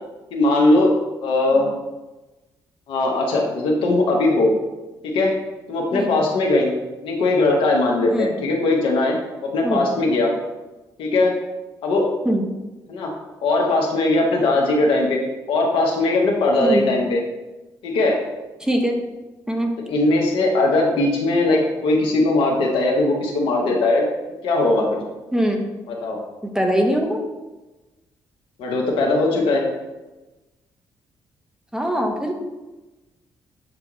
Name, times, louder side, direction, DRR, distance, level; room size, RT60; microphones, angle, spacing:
voice 1, 0.3-0.9 1.2-1.7 2.9-4.5 5.0-5.4 5.7-6.7 7.0-9.2 9.4-10.3 11.0-11.4 11.8-12.1 12.9-13.1 13.4-15.2 15.5-17.2 17.8-18.2 19.9-24.0 24.4-25.0 25.9-26.2 28.6-29.7, left 2 dB, 75° left, 0 dB, 0.9 m, -19 dB
voice 2, 18.6-19.0 19.5-19.7 25.3-25.7 26.4-27.2 31.7-32.4, right 1 dB, 5° right, 2 dB, 0.8 m, -22 dB
6.9 x 2.3 x 3.0 m, 1.1 s
supercardioid pair, 55°, 9 cm